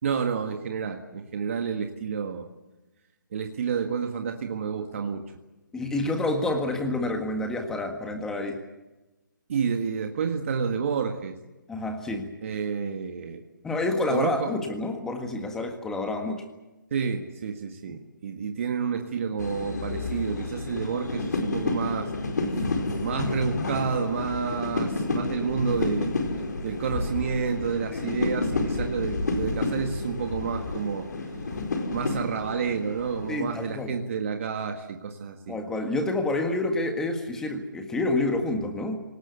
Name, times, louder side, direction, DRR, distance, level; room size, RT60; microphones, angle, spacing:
voice 1, 0.0-2.5 3.3-5.2 9.5-11.4 12.4-13.4 14.1-14.5 16.9-22.1 22.6-22.7 23.0-26.1 26.6-31.1 31.9-35.6, right 6 dB, 40° right, 4 dB, 1.7 m, -29 dB
voice 2, 5.7-8.6 11.7-12.3 13.6-16.4 17.9-18.0 27.9-28.1 33.3-33.9 35.5-39.0, left 2 dB, 5° left, 4 dB, 1.7 m, -28 dB
sound 1, 19.4-33.7, left 3 dB, 60° left, 4.7 m, -30 dB
27.0 x 19.0 x 8.2 m, 1.1 s
hypercardioid pair, 165°, 11 cm